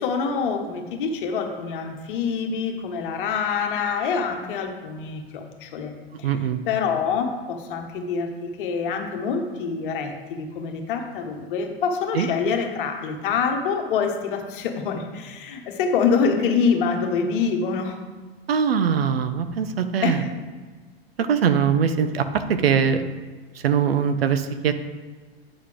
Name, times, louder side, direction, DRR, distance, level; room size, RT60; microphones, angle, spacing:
voice 1, 0.0-5.9 6.2-6.3 6.6-18.0 20.0-20.2, left 5 dB, 55° left, 4 dB, 1.3 m, -25 dB
voice 2, 6.2-6.6 12.1-12.3 18.5-20.2 21.2-23.0 23.5-24.7, right 7 dB, 70° right, 10 dB, 0.7 m, -22 dB
9.0 x 6.6 x 3.5 m, 1.4 s
figure-of-eight pair, 95°, 31 cm